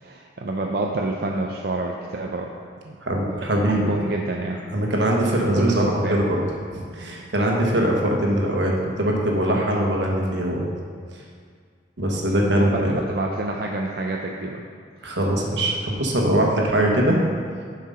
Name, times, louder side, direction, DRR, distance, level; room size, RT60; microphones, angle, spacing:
voice 1, 0.0-2.5 2.8-3.0 3.2-4.6 5.5-6.2 12.5-14.6, right 2 dB, 55° right, 0 dB, 0.5 m, -28 dB
voice 2, 3.0-3.9 4.7-5.8 6.1-6.4 6.7-10.7 12.0-12.9 15.0-17.2, right 1 dB, 75° right, -1 dB, 1.2 m, -22 dB
7.3 x 4.8 x 5.6 m, 2.1 s
head